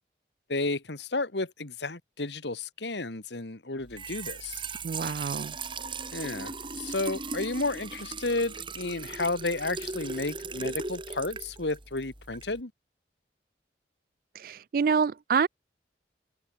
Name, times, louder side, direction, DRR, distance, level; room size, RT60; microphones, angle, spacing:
voice 1, 0.5-4.6 6.1-12.7, left 2 dB, 80° left, 2.0 m, -32 dB
Trickle dribble / Fill (with liquid), 3.8-12.6, right 4 dB, 30° right, 7.2 m, -38 dB
voice 2, 4.8-5.5 14.4-15.5, right 6 dB, 50° right, 0.3 m, -27 dB
head